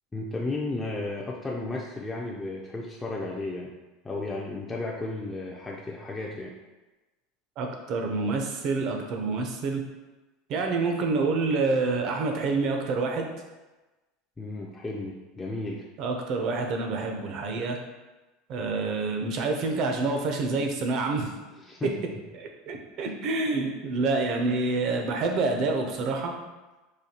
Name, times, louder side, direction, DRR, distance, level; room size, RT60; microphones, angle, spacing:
voice 1, 0.1-3.7 4.0-6.6 14.4-15.8 21.6-21.9, left 2 dB, 10° left, -4 dB, 0.3 m, -33 dB
voice 2, 7.6-9.8 10.5-13.3 16.0-17.8 18.5-21.3 22.3-26.3, right 3 dB, 45° right, 3 dB, 0.5 m, -27 dB
4.9 x 2.3 x 2.8 m, 1.1 s
supercardioid pair, 140°, 0 cm